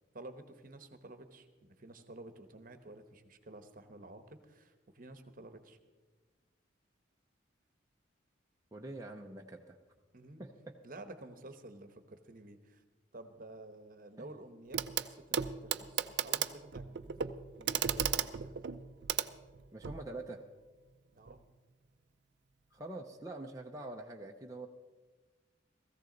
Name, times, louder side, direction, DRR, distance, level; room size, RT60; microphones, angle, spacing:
voice 1, 0.1-5.8 10.1-10.5 10.8-12.8 13.1-17.2 17.6-18.5 21.1-21.4, right 2 dB, 50° right, 8 dB, 1.1 m, -51 dB
voice 2, 8.7-9.8 10.4-10.8 14.2-14.3 19.7-20.4 22.7-24.7, right 2 dB, 20° right, 1 dB, 0.6 m, -45 dB
Clock, 14.7-15.1 15.3-20.0 21.3-21.4, right 8 dB, 65° right, 0.5 m, -35 dB
17.0 x 15.0 x 3.9 m, 1.3 s
head